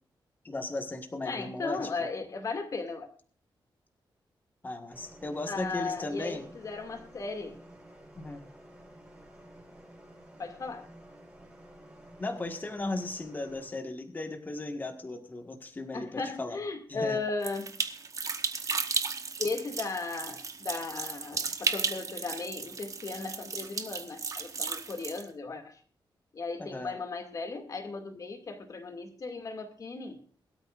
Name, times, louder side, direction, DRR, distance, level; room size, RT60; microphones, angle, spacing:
voice 1, 0.4-1.9 4.6-6.5 8.2-8.5 12.2-16.6 16.9-17.2 26.6-27.0, left 2 dB, 20° left, 5 dB, 1.6 m, -36 dB
voice 2, 1.2-3.1 5.5-7.6 10.4-10.9 15.9-17.8 19.4-25.8 26.3-30.2, left 4 dB, 40° left, 5 dB, 2.3 m, -36 dB
sound 1, 4.9-13.7, right 1 dB, 15° right, 4.9 m, -52 dB
sound 2, 17.4-25.2, right 5 dB, 40° right, 1.2 m, -34 dB
22.5 x 12.5 x 2.5 m, 0.42 s
wide cardioid pair, 175°, 9 cm